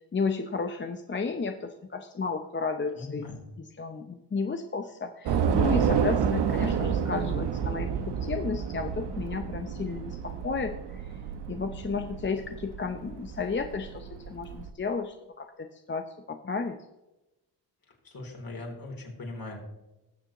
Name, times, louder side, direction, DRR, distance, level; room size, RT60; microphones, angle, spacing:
voice 1, 0.1-3.3 3.6-11.1 11.5-16.8, left 4 dB, 25° left, 6 dB, 0.7 m, -33 dB
voice 2, 2.9-3.4 18.0-19.6, left 2 dB, 55° left, -1 dB, 3.5 m, -39 dB
Train / Subway metro underground, 5.3-14.7, right 7 dB, 75° right, 1.0 m, -30 dB
20.0 x 6.7 x 3.0 m, 0.99 s
cardioid pair, 75°, 42 cm